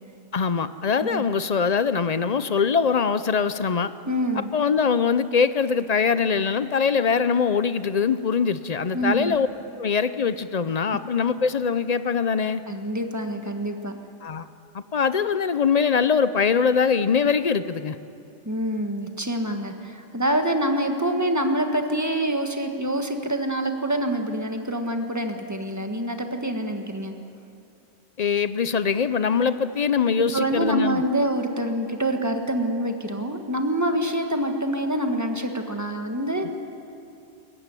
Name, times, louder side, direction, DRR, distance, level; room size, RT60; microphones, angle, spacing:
voice 1, 0.3-3.9 4.3-9.5 9.8-12.6 14.2-14.5 14.7-18.0 28.2-31.0 36.4-36.5, left 6 dB, 45° left, 13 dB, 0.5 m, -22 dB
voice 2, 4.1-4.5 8.9-9.4 12.7-14.0 18.4-27.1 30.2-36.5, right 1 dB, 15° right, 5 dB, 1.5 m, -26 dB
22.5 x 14.5 x 9.8 m, 2.6 s
omnidirectional pair, 1.3 m